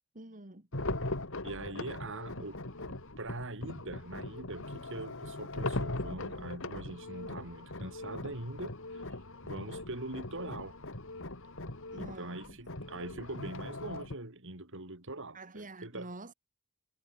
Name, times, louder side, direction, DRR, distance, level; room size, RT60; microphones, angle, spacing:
voice 1, 0.1-0.7 11.9-12.6 15.3-16.3, right 2 dB, 40° right, 2.9 m, -47 dB
sound 1, 0.7-14.1, left 2 dB, 65° left, 3.3 m, -40 dB
voice 2, 1.4-2.6 2.8-9.1 9.4-10.8 12.0-16.1, right 2 dB, 60° right, 5.1 m, -43 dB
head